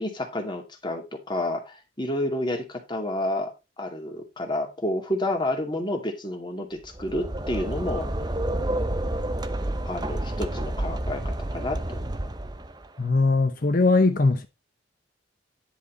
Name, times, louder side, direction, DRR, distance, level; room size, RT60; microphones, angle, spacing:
voice 1, 0.0-8.1 9.8-12.2, left 1 dB, 25° left, 2.4 m, -30 dB
sound 1, 6.8-12.9, right 1 dB, 20° right, 0.7 m, -29 dB
voice 2, 13.0-14.5, left 3 dB, 45° left, 0.8 m, -20 dB
10.5 x 5.6 x 4.0 m
head